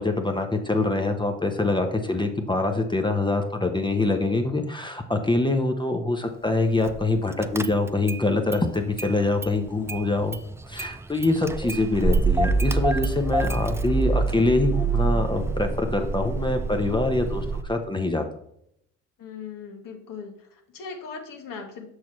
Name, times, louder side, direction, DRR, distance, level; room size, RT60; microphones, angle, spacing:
voice 1, 0.0-10.4 10.7-18.2, left 2 dB, 15° left, 4 dB, 0.8 m, -24 dB
Car / Engine starting, 6.9-7.1 7.4-8.2 8.5-9.6 9.9-17.6, right 3 dB, 10° right, 0.3 m, -26 dB
voice 2, 19.2-21.9, left 5 dB, 65° left, 3 dB, 1.3 m, -39 dB
6.4 x 5.8 x 3.1 m, 0.74 s
supercardioid pair, 55°, 35 cm